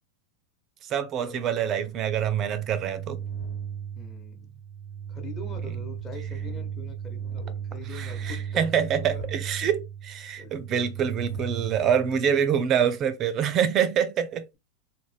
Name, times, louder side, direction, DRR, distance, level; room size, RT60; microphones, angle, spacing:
voice 1, 0.8-3.2 7.9-14.6, right 8 dB, 35° right, 0.4 m, -26 dB
sound 1, 2.1-12.7, right 7 dB, 80° left, 1.3 m, -36 dB
voice 2, 3.9-4.6 5.1-9.3 10.3-10.6, left 3 dB, 25° left, 1.0 m, -43 dB
2.5 x 2.1 x 3.2 m
hypercardioid pair, 110°, 0 cm